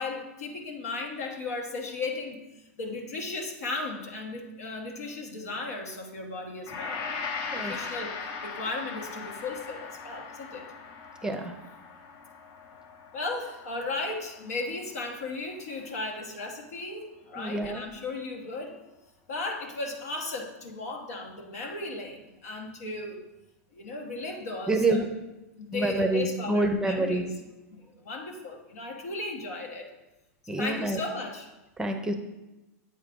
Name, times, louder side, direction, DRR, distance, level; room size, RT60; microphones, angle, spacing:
voice 1, 0.0-2.4 2.8-7.1 7.5-8.1 8.4-10.6 13.1-18.8 19.3-23.2 23.7-25.0 25.6-27.3 27.7-29.9 30.4-31.5, left 3 dB, 85° left, 2 dB, 1.2 m, -36 dB
Gong, 6.7-15.1 15.4-15.6, left 5 dB, 50° left, 0.9 m, -39 dB
voice 2, 11.2-11.5 17.4-17.8 24.7-25.1 25.7-27.2 30.5-31.0 31.8-32.1, right 2 dB, 10° right, 6 dB, 0.6 m, -27 dB
8.2 x 4.8 x 3.7 m, 1.0 s
hypercardioid pair, 120°, 8 cm